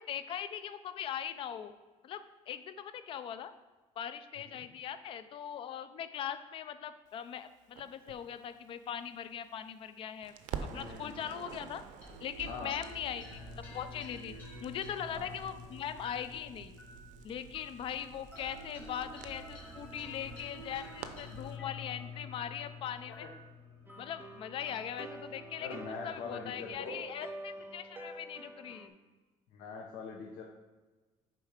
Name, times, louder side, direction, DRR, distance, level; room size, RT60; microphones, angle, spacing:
voice 1, 0.0-1.7 2.0-3.5 4.0-10.3 10.7-11.8 12.2-13.4 13.7-14.3 14.6-16.7 17.2-23.3 24.0-25.7 26.0-28.9, left 9 dB, 45° left, 12 dB, 0.4 m, -40 dB
Crackle, 7.8-9.9 10.2-21.6, right 7 dB, 75° right, 0.6 m, -49 dB
voice 2, 10.7-11.2 12.4-12.8 15.1-15.4 23.1-23.3 25.6-27.0 29.5-30.4, left 5 dB, 80° left, -1 dB, 0.9 m, -43 dB
sound 1, 12.0-26.7, left 3 dB, 10° left, 1.8 m, -49 dB
sound 2, 23.9-28.9, right 2 dB, 15° right, 0.6 m, -48 dB
6.8 x 4.5 x 4.9 m, 1.3 s
cardioid pair, 165°, 13 cm